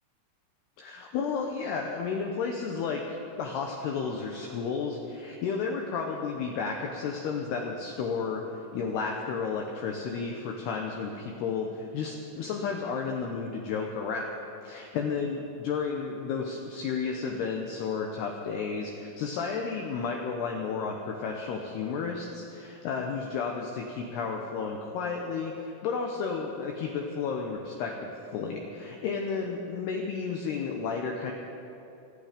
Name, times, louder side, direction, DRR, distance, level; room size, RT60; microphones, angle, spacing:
voice 1, 0.8-8.4 8.7-14.4 14.6-31.3, left 5 dB, 80° left, 1 dB, 2.4 m, -32 dB
27.0 x 9.3 x 5.1 m, 2.7 s
omnidirectional pair, 5.9 m